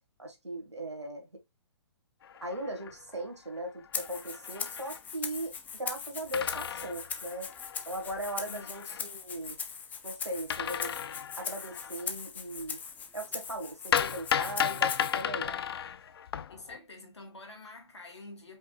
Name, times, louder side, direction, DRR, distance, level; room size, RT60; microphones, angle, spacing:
voice 1, 0.2-1.4 2.4-7.5 7.8-9.6 10.0-11.0 11.4-12.8 13.1-15.6, right 1 dB, 90° right, 1.7 m, -38 dB
sound 1, 2.2-3.2 3.6-3.7 3.8-5.0 6.3-9.0 10.5-12.0 13.9-16.8, left 8 dB, 60° left, 0.4 m, -34 dB
Rattle (instrument), 3.9-15.2, left 6 dB, 10° left, 0.5 m, -40 dB
voice 2, 8.5-9.0 16.5-18.6, left 2 dB, 80° left, 2.1 m, -48 dB
5.2 x 3.8 x 2.3 m
figure-of-eight pair, 125°, 14 cm